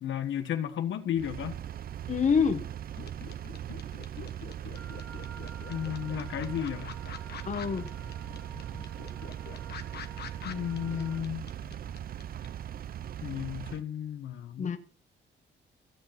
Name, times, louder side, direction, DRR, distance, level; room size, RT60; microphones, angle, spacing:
voice 1, 0.0-1.6 5.7-6.9 10.4-11.4 13.2-14.8, left 9 dB, 70° left, 1.4 m, -33 dB
Engine, 1.1-13.8, right 10 dB, 50° right, 0.5 m, -40 dB
voice 2, 2.1-2.6 7.4-7.9 10.9-11.0 14.6-14.8, left 6 dB, 40° left, 1.0 m, -26 dB
sound 1, 3.0-12.5, left 8 dB, 55° left, 1.4 m, -45 dB
Wind instrument woodwind instrument, 4.7-11.3, right 6 dB, 85° right, 1.5 m, -52 dB
16.0 x 6.7 x 5.9 m
cardioid pair, 90°, 20 cm